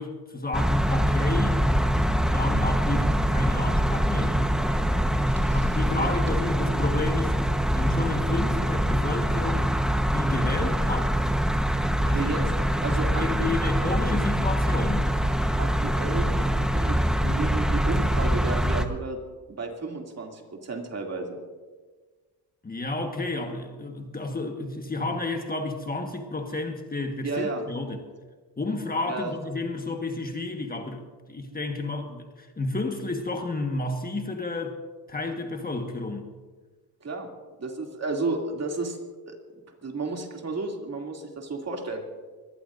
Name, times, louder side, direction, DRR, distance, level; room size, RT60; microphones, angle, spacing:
voice 1, 0.0-1.6 2.3-4.4 5.5-7.4 7.7-9.7 10.1-11.3 12.0-12.5 12.9-15.1 22.6-28.0 28.6-31.0 31.3-34.8 35.1-36.3, left 2 dB, 25° left, 4 dB, 1.4 m, -31 dB
sound 1, 0.5-18.9, equal, ahead, 1.1 m, -24 dB
voice 2, 5.4-6.1 12.1-12.4 12.8-13.9 15.6-19.2 19.5-21.4 27.2-27.6 29.1-29.3 37.0-37.3 37.6-39.0 39.3-39.4 39.8-42.0, right 3 dB, 40° right, 1 dB, 2.7 m, -32 dB
23.5 x 18.5 x 2.6 m, 1.4 s
cardioid pair, 100°, 38 cm